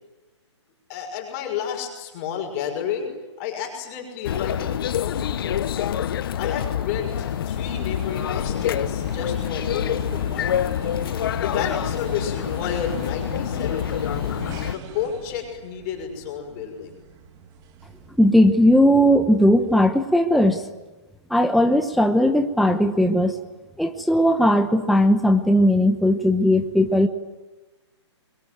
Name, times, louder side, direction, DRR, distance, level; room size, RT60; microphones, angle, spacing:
voice 1, 0.9-3.1 3.4-5.8 6.4-10.7 11.4-14.4 14.7-16.9, left 8 dB, 30° left, 2 dB, 6.0 m, -31 dB
sound 1, 4.2-14.7, left 10 dB, 50° left, 1.0 m, -26 dB
sound 2, 4.8-18.9, right 7 dB, 25° right, 2.0 m, -41 dB
voice 2, 18.2-20.7 21.3-23.4 23.8-27.1, equal, ahead, 6 dB, 0.9 m, -18 dB
27.0 x 22.5 x 9.3 m, 1.1 s
hypercardioid pair, 145°, 15 cm